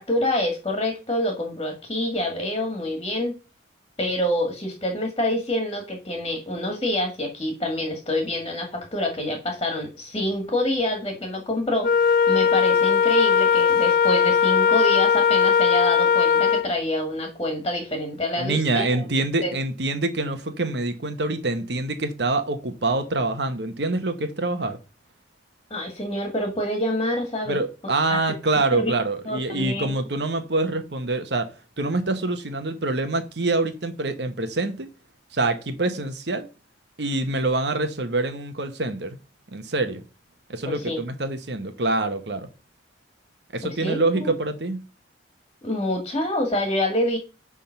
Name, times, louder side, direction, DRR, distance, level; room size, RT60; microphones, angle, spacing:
voice 1, 0.0-3.3 4.0-19.1 19.4-19.5 25.7-27.6 28.1-28.2 28.7-28.9 29.3-30.0 40.7-41.0 43.6-44.3 45.6-47.2, left 1 dB, 25° left, 2.0 m, -27 dB
Wind instrument woodwind instrument, 11.8-16.7, left 7 dB, 50° left, 0.3 m, -19 dB
voice 2, 18.4-24.8 27.5-31.5 31.8-34.9 35.3-36.5 37.0-39.2 39.5-40.0 40.5-42.5 43.5-44.8, right 2 dB, 70° right, 1.1 m, -25 dB
9.8 x 3.6 x 5.9 m
head